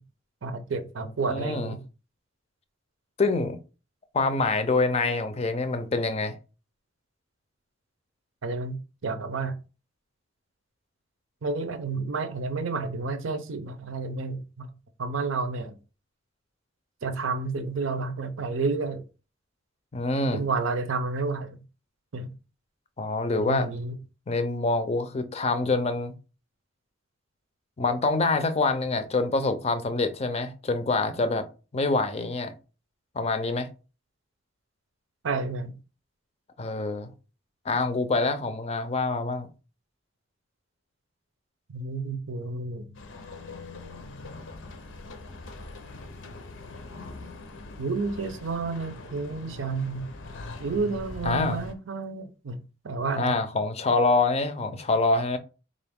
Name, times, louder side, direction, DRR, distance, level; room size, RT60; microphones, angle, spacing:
voice 1, 0.4-1.8 8.4-8.8 9.0-9.5 11.4-14.7 15.0-15.7 17.0-19.0 20.3-21.6 22.1-22.3 23.3-24.0 35.2-35.8 41.7-42.9 47.8-50.1 50.6-52.6 52.8-53.4, right 4 dB, 80° right, 0.6 m, -30 dB
voice 2, 1.3-1.7 3.2-3.6 4.1-6.3 19.9-20.4 23.0-23.7 24.3-26.1 27.8-31.4 31.7-32.5 33.2-33.7 36.6-37.1 37.7-39.5 51.2-51.6 53.2-55.4, left 3 dB, 35° left, 0.5 m, -26 dB
sound 1, 42.9-51.7, left 2 dB, 75° left, 0.6 m, -42 dB
3.8 x 2.5 x 3.5 m
head